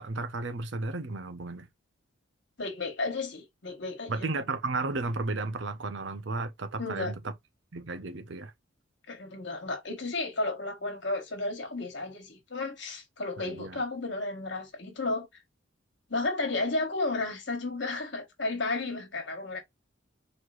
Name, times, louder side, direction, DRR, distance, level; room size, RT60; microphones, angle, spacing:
voice 1, 0.0-1.7 4.1-7.3 7.7-8.5 13.4-13.8, right 3 dB, 65° right, 0.7 m, -33 dB
voice 2, 2.6-4.1 6.8-7.1 9.1-15.3 16.1-19.6, left 2 dB, 60° left, 1.6 m, -33 dB
4.2 x 3.1 x 2.5 m
head